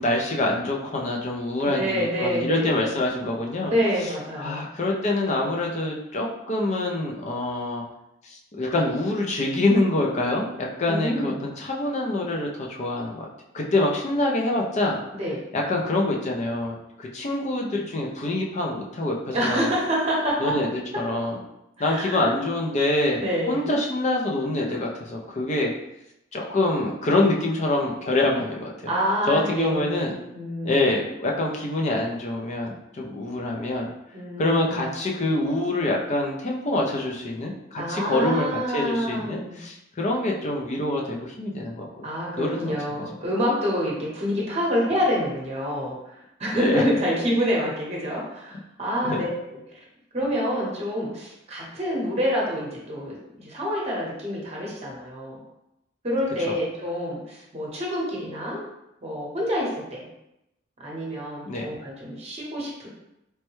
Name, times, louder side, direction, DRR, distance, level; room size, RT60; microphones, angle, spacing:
voice 1, 0.0-3.7 4.4-7.8 8.2-13.3 13.5-15.0 15.5-19.7 20.4-20.7 21.0-21.4 21.8-23.2 23.5-25.7 26.3-28.9 29.3-30.2 30.6-33.9 34.4-38.5 38.7-42.1 42.4-42.7 46.5-46.8 49.0-49.2 56.5-56.6 61.5-61.7, left 2 dB, 40° left, -1 dB, 0.5 m, -25 dB
voice 2, 1.6-2.8 3.6-4.7 10.9-11.5 15.1-15.4 19.3-20.5 20.9-21.0 21.8-22.4 23.2-23.6 28.9-29.8 30.3-30.8 34.1-34.9 37.8-39.6 42.0-49.6 50.1-55.4 56.0-58.6 59.0-60.1 60.8-62.9, equal, 35° right, -4 dB, 0.9 m, -27 dB
3.2 x 2.1 x 3.0 m, 0.87 s
head